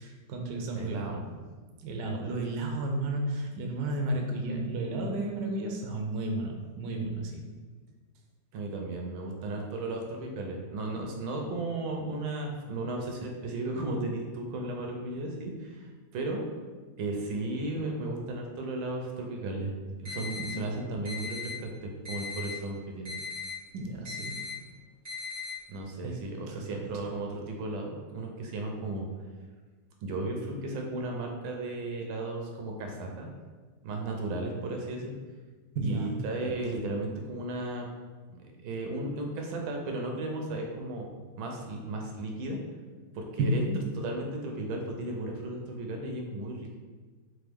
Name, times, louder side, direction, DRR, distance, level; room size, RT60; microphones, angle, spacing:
voice 1, 0.0-1.3 1.8-7.5 20.4-20.5 23.7-24.7 26.0-26.9 35.7-36.2 36.8-36.9 43.4-43.8, right 1 dB, 70° right, 2 dB, 1.2 m, -33 dB
voice 2, 0.8-1.3 8.5-15.9 16.1-16.4 17.0-19.7 20.0-23.2 25.7-29.1 30.0-33.3 33.8-35.1 35.8-37.9 38.3-41.1 41.4-42.6 43.1-43.6 44.0-46.8, right 2 dB, 90° right, 1 dB, 1.5 m, -35 dB
sound 1, 20.0-20.5 21.0-21.5 22.0-22.5 23.0-23.5 24.0-24.5 25.0-25.5, left 4 dB, 25° right, 1.3 m, -38 dB
4.1 x 3.4 x 3.5 m, 1.4 s
omnidirectional pair, 2.1 m